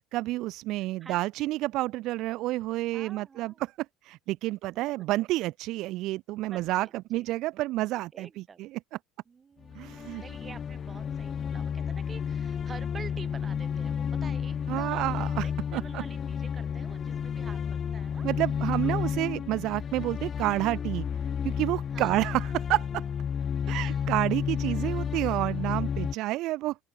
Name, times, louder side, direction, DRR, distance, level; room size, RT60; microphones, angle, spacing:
voice 1, 0.1-3.7 4.0-8.8 9.7-10.2 14.7-16.0 18.2-21.0 21.4-23.0 23.7-26.8, right 17 dB, 65° right, 1.0 m, -29 dB
voice 2, 0.8-1.6 2.9-3.6 4.7-4.8 6.5-7.2 8.1-8.6 9.3-18.3 18.8-19.1 19.9-20.1 21.9-22.3 23.7-24.6, right 5 dB, 30° right, 6.9 m, -48 dB
sound 1, 9.6-26.1, left 7 dB, 35° left, 2.6 m, -31 dB
open air
supercardioid pair, 100°, 0 cm